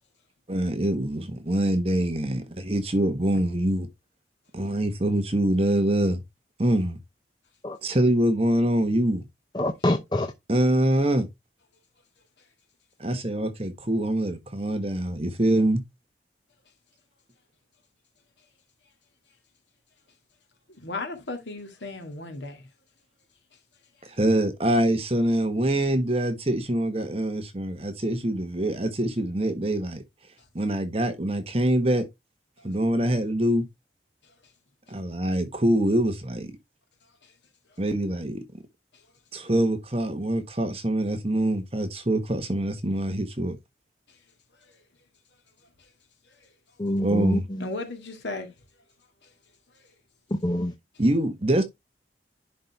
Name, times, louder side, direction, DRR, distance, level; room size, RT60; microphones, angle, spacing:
voice 1, 0.5-3.9 4.5-6.2 6.6-7.0 7.8-9.2 10.5-11.3 13.0-15.8 24.0-30.0 30.5-32.1 32.6-33.6 34.9-36.5 37.8-38.4 39.3-43.6 47.0-47.4 51.0-51.6, right 1 dB, 35° right, 1.3 m, -24 dB
voice 2, 9.5-10.3 46.8-47.7 50.4-50.7, left 1 dB, 25° left, 0.6 m, -26 dB
voice 3, 20.7-22.7 32.6-32.7 34.2-34.3 37.2-37.3 44.6-44.7 46.4-46.5 47.6-48.5, left 2 dB, 80° left, 2.0 m, -36 dB
10.0 x 4.3 x 3.3 m
head